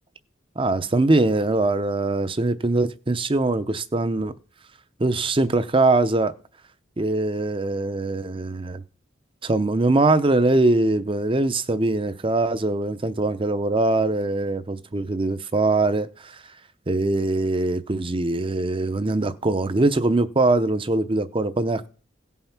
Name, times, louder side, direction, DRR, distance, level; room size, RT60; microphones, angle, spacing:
voice 1, 0.6-4.3 5.0-6.3 7.0-8.8 9.4-16.4 16.9-21.9, right 2 dB, 30° right, 0.6 m, -22 dB
16.5 x 5.7 x 5.9 m
head